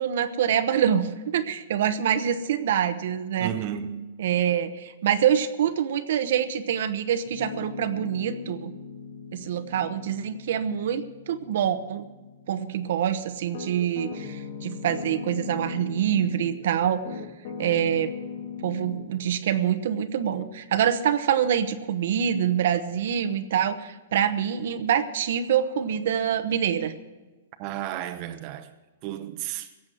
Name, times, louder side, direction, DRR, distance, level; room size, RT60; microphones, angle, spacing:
voice 1, 0.0-3.5 4.2-8.7 9.3-12.0 12.5-17.2 17.6-18.1 18.6-26.9, right 9 dB, 65° right, 1.0 m, -25 dB
voice 2, 3.4-4.1 27.6-28.7 29.0-29.7, right 11 dB, 40° right, 0.8 m, -33 dB
Piano, 7.3-16.6 17.0-19.0, left 5 dB, 55° left, 1.9 m, -39 dB
17.0 x 7.4 x 7.7 m
hypercardioid pair, 145°, 0 cm